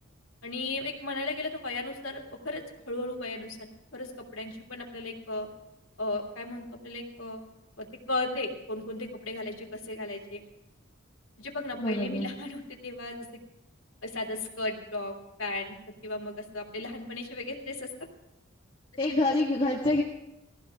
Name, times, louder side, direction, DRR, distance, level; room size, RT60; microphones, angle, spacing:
voice 1, 0.4-5.5 6.0-7.4 7.8-10.4 11.4-13.3 14.0-15.8 16.0-17.9 19.1-19.2, left 2 dB, 75° left, 1 dB, 2.9 m, -35 dB
voice 2, 11.8-12.3 19.0-20.0, left 2 dB, 30° left, -3 dB, 1.9 m, -26 dB
20.0 x 15.0 x 3.7 m, 0.91 s
head